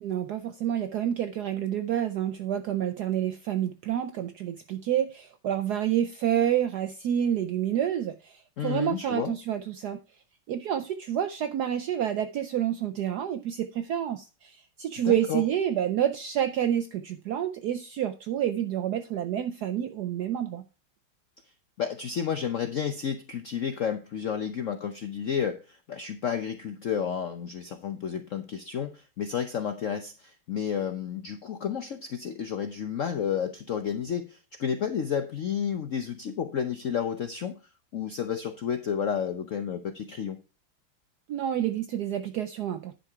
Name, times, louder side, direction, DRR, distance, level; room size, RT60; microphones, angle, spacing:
voice 1, 0.0-10.0 10.5-20.6 41.3-43.0, right 10 dB, 80° right, 0.9 m, -28 dB
voice 2, 8.6-9.3 15.0-15.4 21.8-37.5 37.9-40.4, left 8 dB, 85° left, 0.6 m, -31 dB
10.5 x 5.8 x 4.5 m
omnidirectional pair, 2.4 m